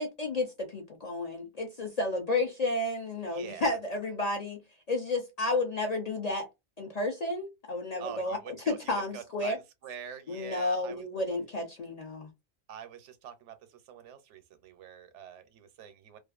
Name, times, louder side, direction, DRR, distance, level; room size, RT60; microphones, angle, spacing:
voice 1, 0.0-4.6 4.9-6.5 6.8-8.4 8.7-9.6 10.3-12.3, left 2 dB, 50° left, 0.4 m, -31 dB
voice 2, 3.3-3.8 8.0-11.1 12.7-16.2, right 8 dB, 85° right, 0.9 m, -45 dB
2.4 x 2.3 x 2.3 m
omnidirectional pair, 1.2 m